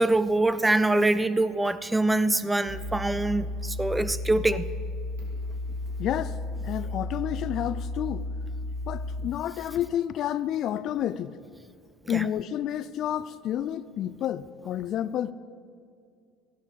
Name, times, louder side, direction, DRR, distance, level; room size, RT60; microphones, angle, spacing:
voice 1, 0.0-4.6 12.1-12.3, right 2 dB, 10° right, 0.5 m, -24 dB
sound 1, 2.6-9.3, left 2 dB, 90° right, 2.1 m, -33 dB
voice 2, 6.0-6.3 6.6-8.2 8.9-11.3 12.1-15.3, left 11 dB, 55° left, 0.4 m, -30 dB
14.0 x 10.5 x 5.3 m
supercardioid pair, 95°, 0 cm